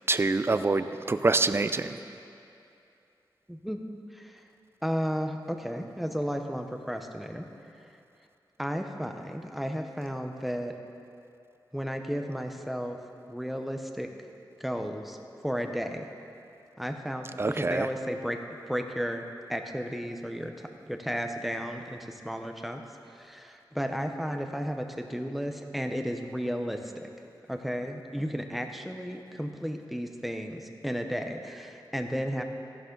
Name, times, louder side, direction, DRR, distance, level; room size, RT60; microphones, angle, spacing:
voice 1, 0.1-2.0 17.4-17.9, right 3 dB, 30° right, 11 dB, 0.4 m, -26 dB
voice 2, 3.5-3.8 4.1-4.4 4.8-7.5 8.6-10.8 11.7-13.0 13.3-14.1 14.6-15.2 15.4-16.1 16.8-18.4 18.7-20.5 20.9-22.8 23.1-27.1 27.5-32.4, equal, ahead, 4 dB, 0.8 m, -33 dB
14.5 x 11.0 x 3.9 m, 2.6 s
wide cardioid pair, 80°, 8 cm